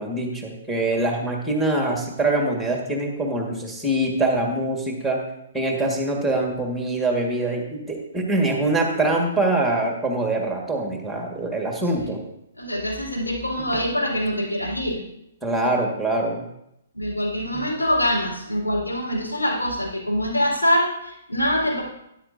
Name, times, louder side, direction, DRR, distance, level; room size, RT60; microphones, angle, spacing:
voice 1, 0.0-5.2 5.5-12.2 15.4-16.4 17.5-17.7, right 2 dB, ahead, 0 dB, 1.6 m, -24 dB
voice 2, 12.5-15.0 16.9-21.8, equal, 90° left, -3 dB, 4.1 m, -24 dB
13.0 x 10.0 x 2.7 m, 0.80 s
figure-of-eight pair, 125°, 0 cm